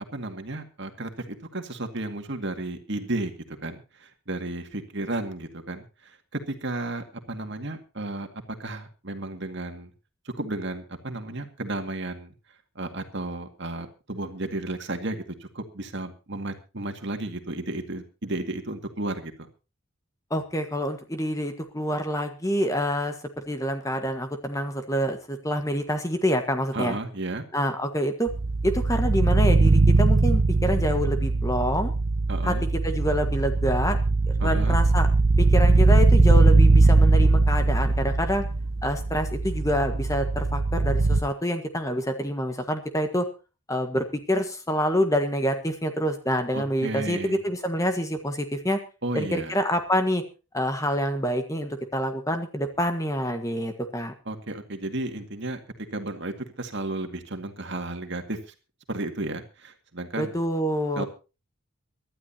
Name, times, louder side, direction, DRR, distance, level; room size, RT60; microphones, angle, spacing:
voice 1, 0.1-9.9 10.4-12.3 12.8-19.5 26.7-27.4 32.3-32.7 34.4-34.8 46.5-47.4 49.0-49.6 54.3-55.6 55.9-58.4 58.9-60.3 61.0-61.1, right 2 dB, 55° right, 6 dB, 2.2 m, -33 dB
voice 2, 20.3-23.2 23.5-27.0 27.5-28.3 28.6-31.9 32.4-32.5 32.8-34.0 34.4-35.1 35.4-38.4 38.8-43.3 43.7-48.8 49.1-50.2 50.5-54.1 60.2-61.0, equal, 15° left, 7 dB, 1.5 m, -27 dB
sound 1, 28.3-41.2, right 3 dB, 75° right, 1.1 m, -20 dB
24.0 x 12.5 x 2.9 m, 0.31 s
head